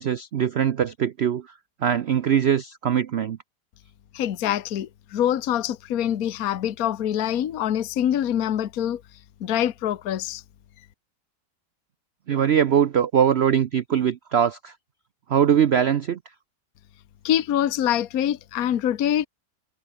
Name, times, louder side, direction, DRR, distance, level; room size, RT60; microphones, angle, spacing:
voice 1, 0.0-1.5 1.8-3.4 12.3-14.7 15.3-16.2, right 9 dB, 60° right, 0.7 m, -21 dB
voice 2, 4.1-9.0 9.4-10.4 17.2-19.3, left 10 dB, 60° left, 1.4 m, -25 dB
omnidirectional pair, 1.8 m